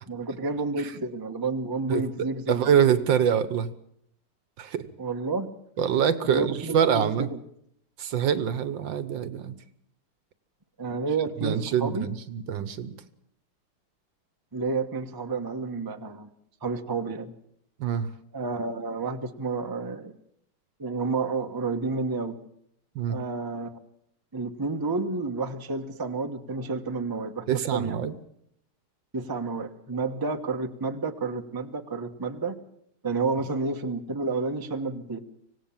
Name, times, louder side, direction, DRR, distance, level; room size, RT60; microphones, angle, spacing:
voice 1, 0.1-2.6 5.0-5.5 6.3-7.4 10.8-12.1 14.5-16.3 16.6-17.3 18.3-20.1 20.8-22.3 23.1-23.8 24.3-28.1 29.1-32.6 33.0-35.2, right 3 dB, 15° right, 5 dB, 0.9 m, -30 dB
voice 2, 2.5-3.7 4.6-4.8 5.8-7.3 8.0-9.5 11.4-13.0 17.8-18.1 23.0-23.2 27.5-28.1, right 8 dB, 65° right, 14 dB, 1.6 m, -25 dB
25.5 x 17.0 x 7.3 m, 0.72 s
omnidirectional pair, 2.3 m